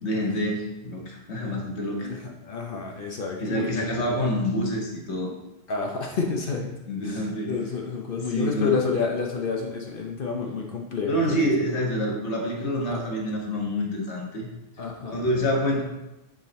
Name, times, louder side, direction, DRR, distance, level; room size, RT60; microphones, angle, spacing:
voice 1, 0.0-2.1 3.4-5.3 6.9-7.5 8.2-8.7 11.1-14.5 15.1-15.8, equal, 75° left, -1 dB, 1.5 m, -27 dB
voice 2, 2.0-4.2 5.7-6.8 7.0-11.4 12.9-13.0 14.8-15.2, left 5 dB, 55° left, 1 dB, 0.9 m, -29 dB
6.8 x 4.1 x 4.1 m, 0.96 s
omnidirectional pair, 1.2 m